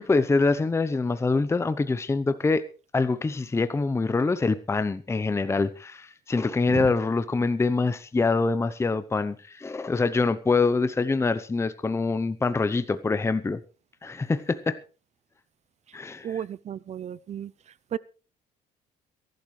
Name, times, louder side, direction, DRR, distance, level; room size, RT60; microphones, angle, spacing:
voice 1, 0.0-2.6 2.9-13.6 14.0-14.8 15.9-16.4, left 3 dB, 15° left, 0.8 m, -25 dB
voice 2, 16.2-17.5 17.9-18.0, right 9 dB, 40° right, 0.6 m, -33 dB
22.0 x 12.0 x 3.3 m
cardioid pair, 110°, 17 cm